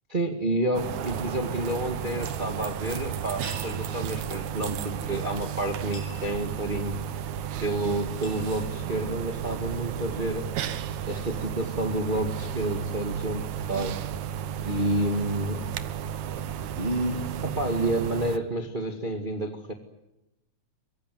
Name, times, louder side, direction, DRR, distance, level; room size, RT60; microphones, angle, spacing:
voice 1, 0.1-6.9 7.6-10.5 11.0-14.0 14.6-15.7 16.7-19.7, right 1 dB, 20° right, 5 dB, 1.7 m, -29 dB
sound 1, 0.7-18.4, right 8 dB, 80° right, 2.5 m, -33 dB
sound 2, 2.6-9.8, left 1 dB, 40° left, 7.6 m, -50 dB
24.0 x 23.0 x 9.3 m, 0.92 s
omnidirectional pair, 3.4 m